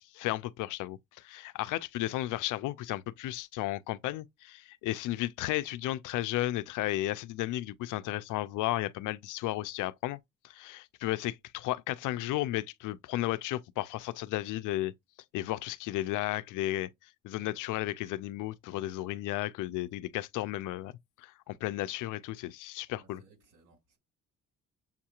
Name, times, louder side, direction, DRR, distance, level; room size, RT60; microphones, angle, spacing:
voice 1, 0.0-10.2 10.4-14.9 15.3-16.9 17.2-20.9 21.2-23.2, left 16 dB, 90° left, 0.5 m, -34 dB
voice 2, 22.9-24.0, right 4 dB, 85° right, 3.3 m, -62 dB
7.1 x 2.8 x 2.4 m
cardioid pair, 90°, 30 cm